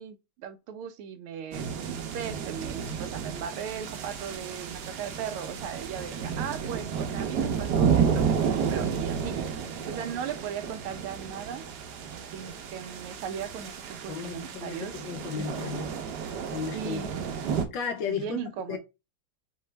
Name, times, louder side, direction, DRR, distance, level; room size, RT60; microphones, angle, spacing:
voice 1, 0.0-9.4 9.9-11.6 12.3-15.0 15.4-15.8 16.7-17.1 18.1-18.8, right 8 dB, 85° right, 1.6 m, -38 dB
sound 1, 1.5-17.7, right 7 dB, 65° right, 1.2 m, -31 dB
voice 2, 14.1-16.0 16.5-17.0 17.7-18.4 18.7-18.8, left 6 dB, 70° left, 1.4 m, -34 dB
4.4 x 3.6 x 3.2 m
omnidirectional pair, 2.3 m